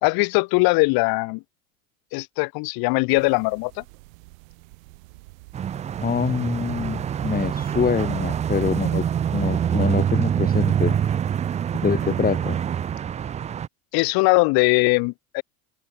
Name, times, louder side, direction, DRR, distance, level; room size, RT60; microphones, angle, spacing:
voice 1, 0.0-1.4 2.1-3.8 13.9-15.4, left 27 dB, 55° left, 2.1 m, -20 dB
sound 1, 3.1-9.9, right 25 dB, 70° right, 4.2 m, -46 dB
sound 2, 5.5-13.7, right 9 dB, 15° right, 0.4 m, -25 dB
voice 2, 6.0-9.1 9.3-11.0 11.8-12.6, left 6 dB, 20° left, 2.2 m, -25 dB
open air
hypercardioid pair, 100°, 42 cm